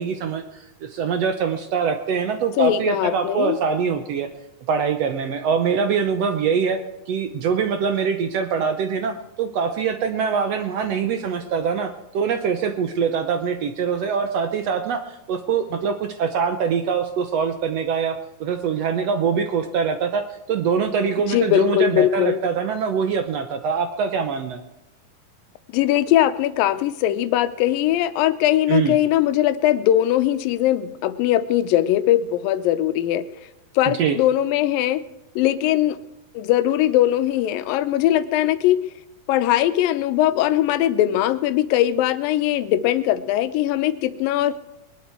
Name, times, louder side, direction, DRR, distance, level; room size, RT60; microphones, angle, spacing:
voice 1, 0.0-4.3 4.7-6.8 7.1-24.6 28.7-29.0 34.0-34.2, right 6 dB, 75° right, 7 dB, 1.5 m, -23 dB
voice 2, 2.6-3.6 21.3-22.4 25.7-33.3 33.8-35.0 35.4-36.0 36.3-38.8 39.3-44.5, left 13 dB, 85° left, 12 dB, 2.5 m, -20 dB
21.0 x 11.5 x 4.5 m, 0.96 s
omnidirectional pair, 4.0 m